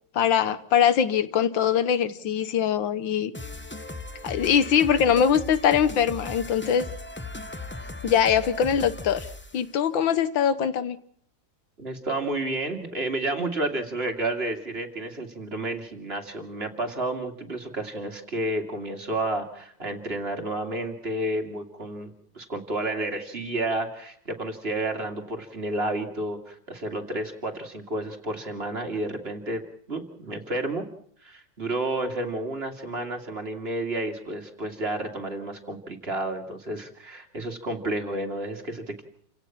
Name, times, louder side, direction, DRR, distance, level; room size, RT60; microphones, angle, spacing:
voice 1, 0.1-3.3 4.2-6.9 8.0-9.3 9.5-11.0, left 8 dB, 85° left, 1.8 m, -22 dB
sound 1, 3.3-9.6, left 2 dB, 20° left, 0.3 m, -38 dB
voice 2, 11.8-29.6 29.9-30.8 31.2-39.0, right 2 dB, 30° right, 2.5 m, -31 dB
28.5 x 17.0 x 5.8 m
omnidirectional pair, 2.0 m